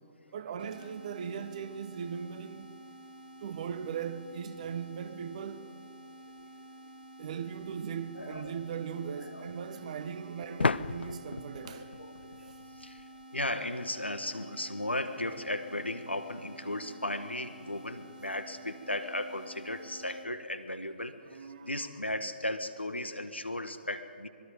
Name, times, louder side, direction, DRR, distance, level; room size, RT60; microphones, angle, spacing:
voice 1, 0.3-2.7 3.4-5.7 7.2-12.0 21.3-21.8, right 7 dB, 40° right, 1.1 m, -39 dB
sound 1, 0.6-20.3, right 1 dB, 65° right, 3.0 m, -51 dB
sound 2, 7.6-7.7 10.6-13.2, left 4 dB, 70° left, 0.5 m, -33 dB
voice 2, 8.1-8.6 9.2-9.4 10.4-10.5 11.6-24.3, left 1 dB, 90° left, 1.6 m, -36 dB
25.0 x 22.0 x 5.3 m
figure-of-eight pair, 135°, 6 cm